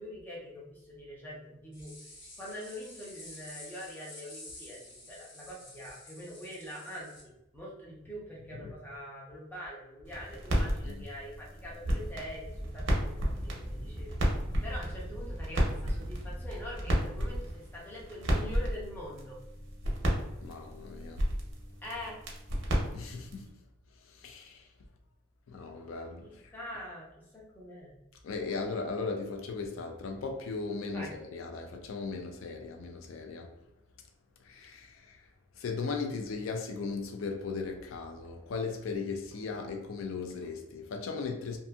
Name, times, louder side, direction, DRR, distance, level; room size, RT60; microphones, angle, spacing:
voice 1, 0.0-1.9 2.4-14.2 14.6-19.4 21.8-22.1 26.2-27.0 27.3-27.9 30.9-31.1, equal, 10° left, 0.7 m, -44 dB
sound 1, 1.7-7.2, left 1 dB, 60° left, 1.3 m, -50 dB
sound 2, 10.1-23.5, equal, 65° right, 0.7 m, -33 dB
Wind, 11.3-17.6, equal, 5° right, 0.4 m, -42 dB
voice 2, 20.4-21.3 22.9-23.6 24.0-24.7 25.5-26.5 28.2-33.5 34.4-35.3 35.5-41.6, left 4 dB, 80° left, 0.4 m, -37 dB
2.6 x 2.6 x 2.3 m
head